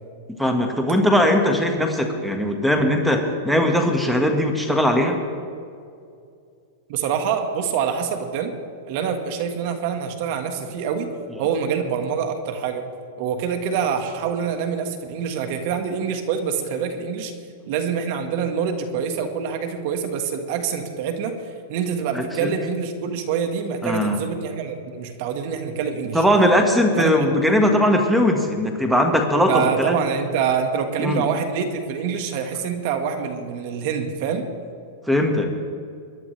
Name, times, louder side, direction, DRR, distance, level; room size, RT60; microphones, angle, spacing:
voice 1, 0.4-5.2 22.1-22.6 23.8-24.2 26.1-29.9 31.0-31.2 35.1-35.5, equal, 5° right, 4 dB, 1.7 m, -19 dB
voice 2, 6.9-8.5 8.9-11.1 11.4-12.9 13.2-17.3 17.7-21.4 21.7-26.2 27.0-27.3 29.5-34.5, right 7 dB, 55° right, 6 dB, 1.7 m, -25 dB
22.5 x 11.0 x 3.4 m, 2.4 s
hypercardioid pair, 125°, 0 cm